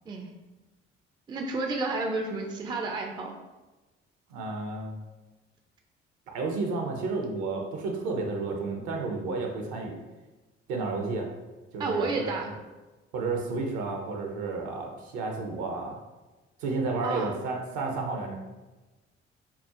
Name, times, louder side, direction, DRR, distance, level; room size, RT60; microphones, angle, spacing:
voice 1, 1.3-3.4 11.8-12.5 17.0-17.4, right 3 dB, 15° right, 2 dB, 0.4 m, -31 dB
voice 2, 4.3-5.0 6.3-10.0 10.7-11.3 11.7-12.3 13.1-16.0 16.6-18.3, right 3 dB, 60° right, 2 dB, 0.6 m, -31 dB
4.2 x 2.1 x 2.4 m, 1.2 s
figure-of-eight pair, 45°, 32 cm